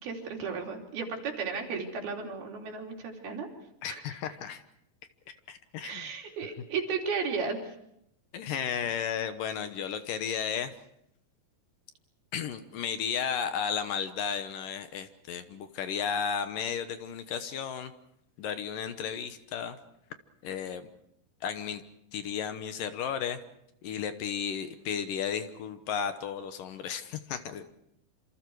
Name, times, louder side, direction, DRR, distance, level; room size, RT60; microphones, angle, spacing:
voice 1, 0.0-3.5 3.9-4.0 5.8-7.6, right 5 dB, 75° right, 1 dB, 5.1 m, -34 dB
voice 2, 3.8-4.6 5.5-6.1 8.3-10.7 12.3-17.9 18.4-19.8 20.4-20.9 21.4-21.8 22.1-23.4 23.8-27.8, left 7 dB, 70° left, 9 dB, 2.5 m, -34 dB
27.5 x 27.0 x 4.8 m, 0.76 s
omnidirectional pair, 4.5 m